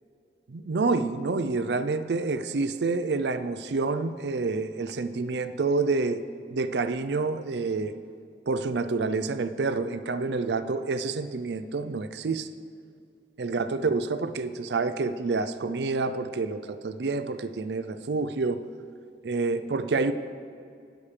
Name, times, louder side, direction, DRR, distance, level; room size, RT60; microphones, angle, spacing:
voice 1, 0.5-6.2 6.5-7.9 8.5-12.5 13.4-18.6 19.2-20.1, right 3 dB, 75° right, 11 dB, 0.5 m, -28 dB
18.5 x 7.1 x 3.3 m, 2.5 s
head